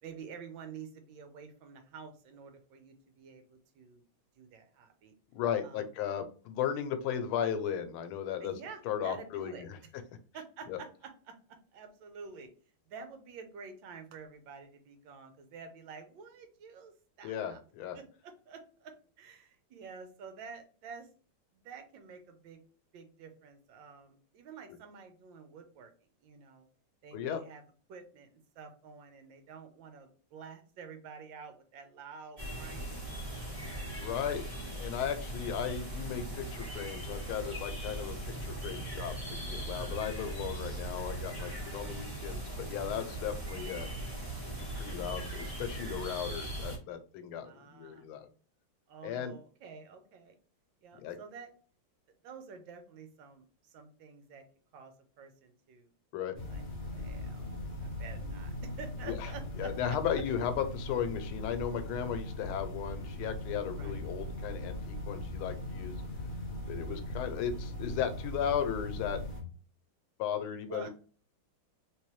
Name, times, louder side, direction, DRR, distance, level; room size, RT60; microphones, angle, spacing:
voice 1, 0.0-4.0 4.4-5.1 5.6-5.9 8.4-9.6 10.3-12.5 12.9-16.9 17.2-17.6 17.9-21.1 21.5-22.6 22.9-25.9 26.2-26.7 27.0-27.6 27.9-33.4 34.0-34.5 38.7-39.2 41.8-42.1 47.4-48.1 48.9-50.4 50.8-51.5 52.2-54.4 54.7-55.9 56.5-57.5 57.8-60.0 63.7-63.9 66.7-67.1 70.7-70.9, right 5 dB, 70° right, 7 dB, 1.4 m, -49 dB
voice 2, 5.3-8.5 8.8-9.8 10.7-10.8 17.2-18.0 27.1-27.4 34.0-34.4 34.7-39.1 39.4-43.9 44.5-48.3 49.0-49.3 50.9-51.2 56.1-56.4 59.0-59.3 59.6-66.0 66.7-69.2 70.2-70.9, left 8 dB, 90° left, 9 dB, 1.5 m, -36 dB
sound 1, 32.4-46.8, right 1 dB, 25° right, 0.9 m, -39 dB
sound 2, 56.3-69.4, left 1 dB, 55° left, 0.5 m, -39 dB
3.3 x 3.1 x 3.0 m, 0.40 s
omnidirectional pair, 2.3 m